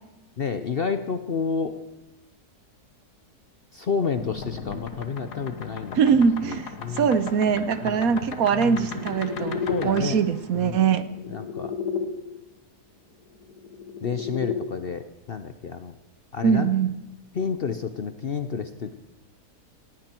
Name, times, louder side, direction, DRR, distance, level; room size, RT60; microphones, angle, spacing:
voice 1, 0.4-1.7 3.7-6.0 6.5-6.6 6.8-7.1 7.8-8.3 8.6-8.8 9.7-10.2 10.5-10.9 11.3-11.7 14.0-15.9 16.3-16.7 17.3-19.0, left 5 dB, 50° left, 9 dB, 0.7 m, -30 dB
sound 1, 4.2-12.1 13.4-14.6, left 6 dB, 80° left, 1.9 m, -34 dB
voice 2, 5.9-11.1 16.4-16.9, right 6 dB, 65° right, 13 dB, 1.2 m, -22 dB
19.0 x 16.5 x 4.5 m, 0.97 s
omnidirectional pair, 1.7 m